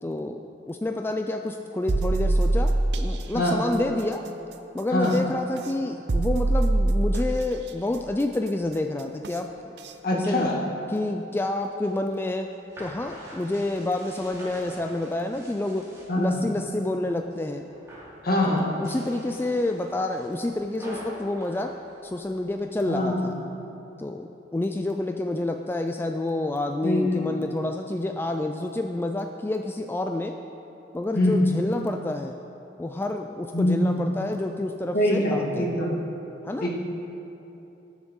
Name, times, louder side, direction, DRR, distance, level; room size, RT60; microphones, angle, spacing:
voice 1, 0.0-4.2 4.7-9.5 10.1-10.5 10.9-12.5 12.8-15.9 16.2-17.7 18.5-21.7 22.0-23.3 24.0-30.4 30.9-32.3 32.8-35.8 36.4-36.7, left 2 dB, 15° left, 5 dB, 0.3 m, -28 dB
sound 1, 1.9-3.2 5.0-5.1 6.1-7.4 9.2-9.3 9.8-9.9, right 2 dB, 70° right, 0.6 m, -23 dB
voice 2, 10.0-10.6 16.1-16.4 18.2-18.7 22.9-23.4 26.8-27.4 31.1-31.4 33.5-34.0 34.9-36.0 36.6-36.7, left 1 dB, 55° left, -3 dB, 1.9 m, -23 dB
sound 2, 11.6-16.5 16.9-17.4 17.7-18.2 18.7-22.6, right 1 dB, 20° right, 2.8 m, -45 dB
19.5 x 7.1 x 3.7 m, 3.0 s
head